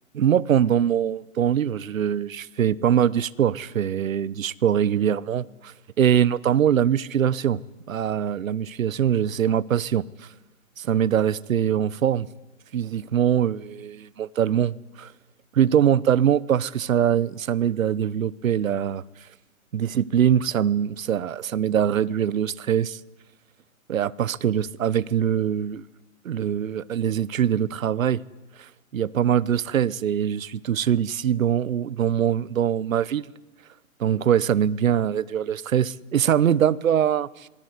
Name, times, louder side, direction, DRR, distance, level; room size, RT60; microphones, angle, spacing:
voice 1, 0.1-7.6 7.9-10.0 10.8-12.3 12.7-15.1 15.5-19.0 19.7-23.0 23.9-25.8 26.2-28.2 28.9-33.3 34.0-37.5, right 9 dB, 70° right, 0.9 m, -23 dB
26.0 x 19.5 x 9.5 m
hypercardioid pair, 180°, 41 cm